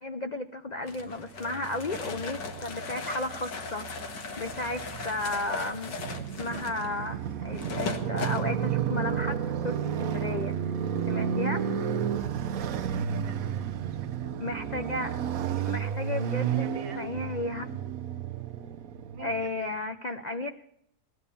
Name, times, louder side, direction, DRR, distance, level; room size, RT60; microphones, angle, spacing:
voice 1, 0.0-10.6 11.1-11.7 14.4-15.2 15.6-16.7 16.9-17.7 19.2-20.6, left 2 dB, 60° left, 7 dB, 0.4 m, -34 dB
sound 1, 0.9-8.4, left 4 dB, 90° left, 2.2 m, -38 dB
Motorcycle, 1.4-19.5, right 8 dB, 60° right, 1.1 m, -32 dB
voice 2, 12.6-14.7 16.4-17.1 19.1-19.8, right 7 dB, 80° right, 5 dB, 1.5 m, -48 dB
18.5 x 11.0 x 7.0 m, 0.77 s
omnidirectional pair, 1.8 m